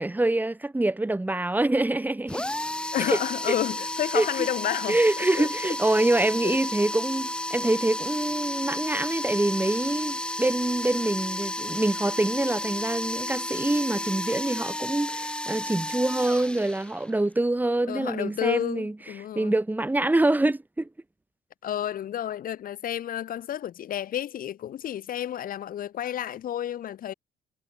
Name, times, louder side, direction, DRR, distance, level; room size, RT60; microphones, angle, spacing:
voice 1, 0.0-2.5 3.1-3.2 4.1-4.3 4.9-18.9 19.3-20.9, right 2 dB, 10° right, 4.9 m, -25 dB
sound 1, 2.3-17.2, left 1 dB, 5° left, 3.8 m, -32 dB
voice 2, 2.9-5.0 5.4-5.5 6.4-6.6 17.9-19.5 21.6-27.1, left 11 dB, 55° left, 2.6 m, -30 dB
cardioid pair, 110°, 17 cm